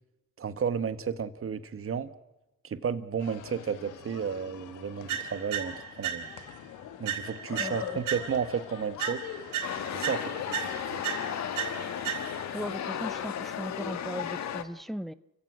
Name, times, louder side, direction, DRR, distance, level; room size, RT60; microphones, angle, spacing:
voice 1, 0.4-2.1 2.6-6.3 7.0-9.2 9.9-10.6 10.9-11.0, right 7 dB, 45° right, 11 dB, 1.6 m, -32 dB
sound 1, 3.2-13.6, left 9 dB, 85° left, 1.6 m, -44 dB
sound 2, 5.1-6.6 7.0-8.6 9.0-12.6, right 9 dB, 75° right, 3.8 m, -36 dB
voice 2, 7.6-8.0 12.5-15.1, equal, ahead, 15 dB, 0.7 m, -38 dB
sound 3, 9.6-14.6, left 9 dB, 65° left, 1.6 m, -35 dB
29.5 x 16.0 x 6.4 m, 1.0 s
cardioid pair, 90°, 30 cm